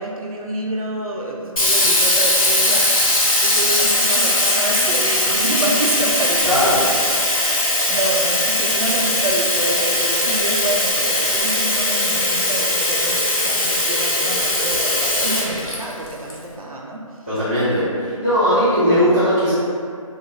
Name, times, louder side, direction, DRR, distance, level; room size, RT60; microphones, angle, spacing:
voice 1, 0.0-7.2 7.5-17.2 18.5-18.6, right 2 dB, 90° right, -2 dB, 0.4 m, -27 dB
Sink (filling or washing), 1.6-16.3, left 1 dB, 80° left, 0.7 m, -19 dB
voice 2, 6.4-6.8 17.3-19.5, equal, ahead, -33 dB, 0.3 m, -18 dB
2.6 x 2.0 x 2.7 m, 2.2 s
figure-of-eight pair, 155°, 18 cm